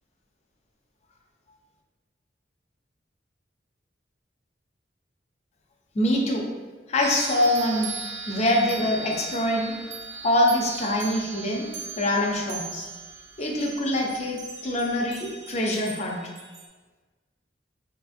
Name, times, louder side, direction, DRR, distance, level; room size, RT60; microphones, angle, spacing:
voice 1, 5.9-6.5 6.9-7.9 8.3-9.8 10.2-11.7 12.0-12.9 13.4-16.2, left 1 dB, 40° left, 0 dB, 0.5 m, -24 dB
sound 1, 7.0-16.7, right 5 dB, 75° right, 0.5 m, -39 dB
3.2 x 2.4 x 2.5 m, 1.3 s
head